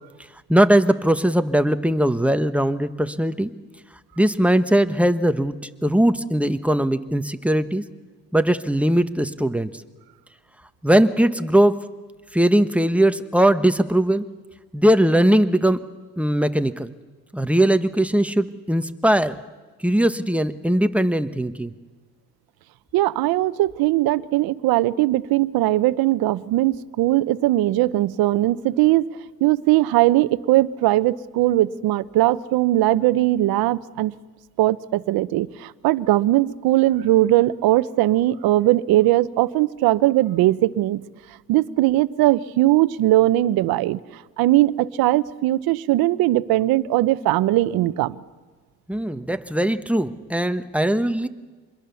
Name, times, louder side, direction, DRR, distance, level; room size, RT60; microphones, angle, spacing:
voice 1, 0.5-3.5 4.2-5.5 5.8-7.8 8.3-9.7 10.8-11.9 12.3-14.3 14.7-15.9 16.2-16.9 17.3-19.4 19.8-21.7 48.9-51.3, right 1 dB, 5° right, 9 dB, 1.1 m, -20 dB
voice 2, 22.9-29.1 29.4-34.1 34.6-41.0 41.5-44.0 44.4-48.2, right 16 dB, 85° right, 16 dB, 0.8 m, -19 dB
26.0 x 21.5 x 7.0 m, 1.4 s
cardioid pair, 95°, 36 cm